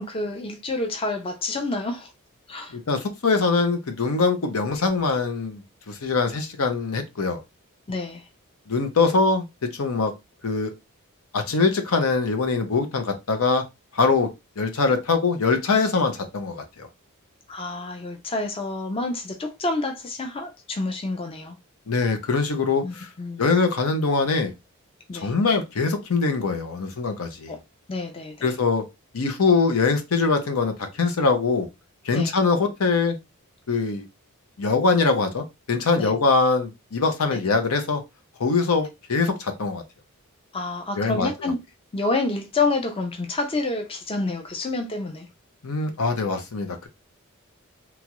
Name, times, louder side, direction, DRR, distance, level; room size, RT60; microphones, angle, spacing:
voice 1, 0.0-2.1 2.5-2.8 7.9-8.3 17.5-21.6 22.8-23.5 25.1-25.3 27.5-27.6 27.9-28.6 32.1-32.4 36.0-36.2 40.5-41.6 41.9-45.3, left 2 dB, 25° left, 0.4 m, -28 dB
voice 2, 2.7-7.4 8.7-9.4 9.7-10.1 10.4-10.7 11.3-13.6 13.9-14.3 14.6-16.9 21.9-23.1 23.4-24.5 25.1-27.6 28.4-28.8 29.1-31.7 32.0-33.2 33.7-34.0 34.6-38.0 38.4-39.8 41.0-41.3 45.6-46.9, left 4 dB, 80° left, 0.7 m, -23 dB
3.0 x 2.4 x 2.9 m
head